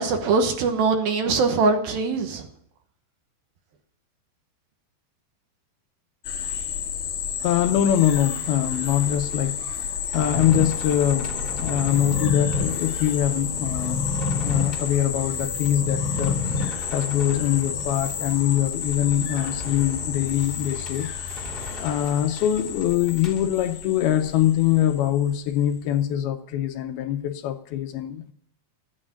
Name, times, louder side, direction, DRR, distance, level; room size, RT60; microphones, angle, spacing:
voice 1, 0.0-2.5, right 4 dB, 70° right, 2.9 m, -22 dB
sound 1, 6.2-25.3, left 7 dB, 60° left, 3.4 m, -31 dB
voice 2, 7.4-14.0 14.4-28.3, left 11 dB, 80° left, 2.4 m, -24 dB
sound 2, 8.1-23.5, left 2 dB, 30° left, 0.8 m, -41 dB
sound 3, 10.3-18.3, left 4 dB, ahead, 3.4 m, -30 dB
13.5 x 9.7 x 8.8 m
omnidirectional pair, 4.8 m